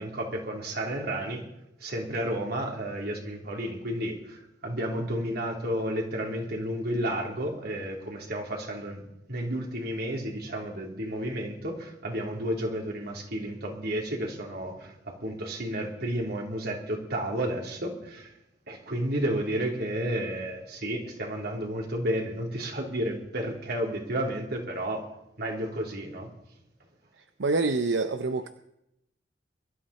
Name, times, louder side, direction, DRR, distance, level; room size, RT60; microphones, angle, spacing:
voice 1, 0.0-1.4 1.8-9.0 9.3-18.3 18.7-25.0 25.4-26.3, right 1 dB, 60° right, 1 dB, 3.5 m, -32 dB
voice 2, 27.4-28.5, right 3 dB, 85° right, 10 dB, 0.7 m, -26 dB
22.5 x 12.5 x 4.3 m, 0.84 s
head